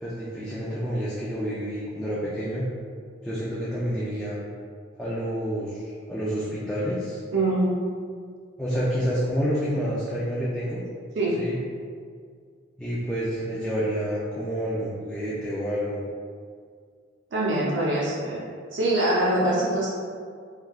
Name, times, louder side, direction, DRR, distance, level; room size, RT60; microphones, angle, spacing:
voice 1, 0.0-2.7 3.2-4.4 5.0-7.2 8.6-10.8 11.4-11.6 12.8-16.0, equal, 5° left, -9 dB, 0.3 m, -28 dB
voice 2, 7.3-7.8 11.2-11.4 17.3-18.4 18.7-19.9, right 1 dB, 75° right, -6 dB, 0.6 m, -23 dB
3.4 x 2.3 x 2.3 m, 2.1 s
head